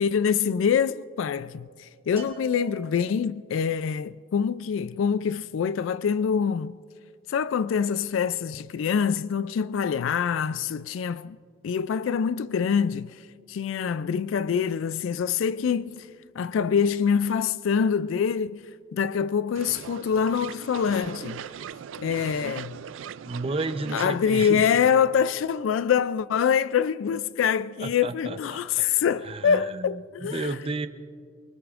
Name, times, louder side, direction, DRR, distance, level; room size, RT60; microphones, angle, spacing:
voice 1, 0.0-6.8 7.3-11.4 11.6-13.2 13.5-16.1 16.4-21.5 22.0-22.8 23.9-30.5, left 7 dB, 75° left, 0.3 m, -25 dB
Bell, 2.2-3.5, right 3 dB, 30° left, 2.2 m, -45 dB
sound 1, 19.5-24.8, right 7 dB, 70° right, 0.4 m, -40 dB
voice 2, 23.2-24.7 27.8-28.8 29.2-30.9, right 3 dB, 30° right, 0.6 m, -32 dB
24.0 x 23.5 x 2.5 m
head